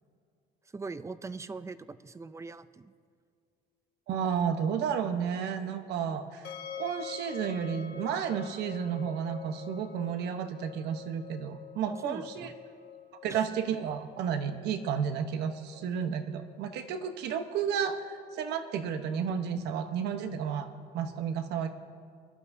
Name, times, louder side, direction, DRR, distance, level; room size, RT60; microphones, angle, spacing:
voice 1, 0.7-2.9 11.9-12.5 13.3-13.4, right 4 dB, 15° right, 14 dB, 0.5 m, -41 dB
voice 2, 4.1-6.5 6.8-12.5 13.2-20.7 20.9-21.7, right 7 dB, 85° right, 8 dB, 1.0 m, -32 dB
sound 1, 6.4-19.4, left 8 dB, 80° left, 1.2 m, -47 dB
23.0 x 12.0 x 2.7 m, 2.2 s
cardioid pair, 110°, 17 cm